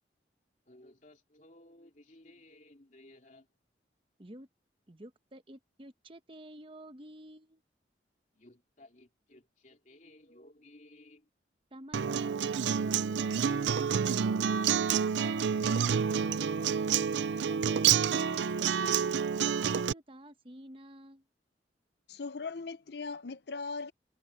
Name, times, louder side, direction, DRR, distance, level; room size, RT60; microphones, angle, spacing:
voice 1, 0.7-3.5 8.3-11.3 15.1-18.0, left 2 dB, 45° left, 3.2 m, -57 dB
voice 2, 4.9-7.6 11.7-14.1 18.6-21.2, right 1 dB, 30° right, 1.1 m, -51 dB
Acoustic guitar, 11.9-19.9, right 7 dB, 85° right, 0.4 m, -28 dB
voice 3, 22.1-23.9, left 4 dB, 65° left, 0.7 m, -39 dB
head